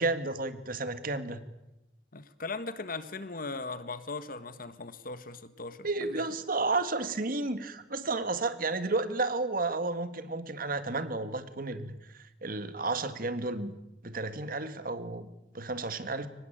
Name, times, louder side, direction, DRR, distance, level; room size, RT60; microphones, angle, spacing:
voice 1, 0.0-1.4 5.8-13.7 14.0-15.3 15.5-16.3, right 3 dB, 55° right, 10 dB, 1.9 m, -32 dB
voice 2, 2.1-6.2, left 3 dB, 55° left, 12 dB, 1.6 m, -39 dB
24.0 x 19.5 x 8.9 m, 0.94 s
head